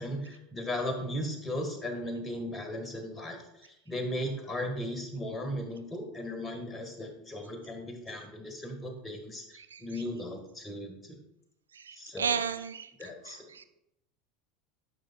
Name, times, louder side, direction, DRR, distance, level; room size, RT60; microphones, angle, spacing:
voice 1, 0.0-3.4 3.7-11.2 12.0-12.4 13.0-13.4, left 1 dB, 20° left, 4 dB, 1.5 m, -37 dB
voice 2, 11.9-12.9 13.3-13.6, right 6 dB, 80° right, 11 dB, 0.3 m, -33 dB
11.5 x 5.3 x 2.3 m, 0.84 s
figure-of-eight pair, 80°, 0 cm